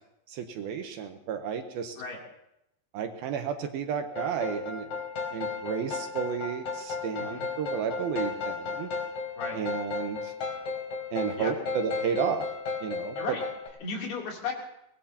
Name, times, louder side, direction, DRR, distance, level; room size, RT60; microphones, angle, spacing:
voice 1, 0.3-2.0 2.9-4.9 5.3-8.9 9.5-10.3 11.1-12.4 12.8-13.4, right 7 dB, 75° right, 6 dB, 2.5 m, -32 dB
sound 1, 4.2-13.7, left 4 dB, 50° left, 3.6 m, -34 dB
voice 2, 13.8-14.5, left 4 dB, 70° left, -1 dB, 5.1 m, -35 dB
23.0 x 20.0 x 2.9 m, 0.82 s
omnidirectional pair, 4.8 m